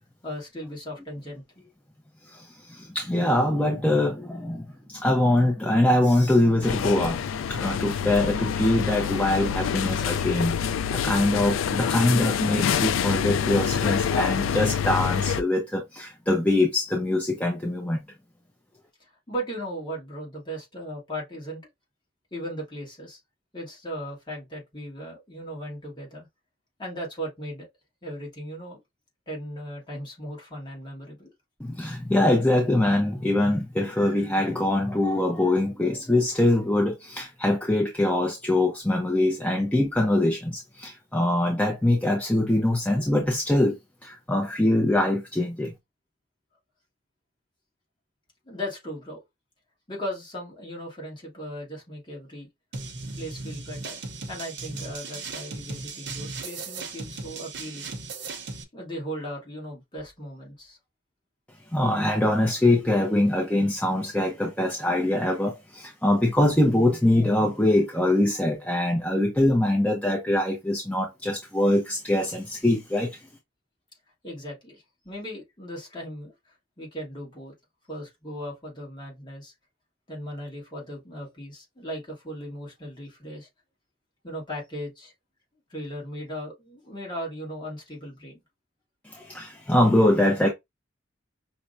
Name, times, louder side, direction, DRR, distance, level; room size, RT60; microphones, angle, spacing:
voice 1, 0.2-1.6 19.0-21.6 22.3-23.2 23.5-26.3 26.8-27.7 28.0-28.8 29.3-31.3 48.4-49.2 49.9-52.5 52.8-52.9 53.2-54.0 54.3-57.9 58.7-60.8 74.2-77.5 77.9-79.5 80.1-83.5 84.2-85.1 85.7-88.4, equal, 25° left, 1.4 m, -37 dB
voice 2, 2.2-7.2 7.5-18.0 31.6-43.7 44.0-45.7 61.7-73.2 89.0-90.5, left 1 dB, 5° left, 0.5 m, -23 dB
sound 1, 6.6-15.4, left 7 dB, 80° left, 0.3 m, -26 dB
sound 2, 52.7-58.6, right 3 dB, 60° right, 0.7 m, -37 dB
5.5 x 2.1 x 2.5 m
head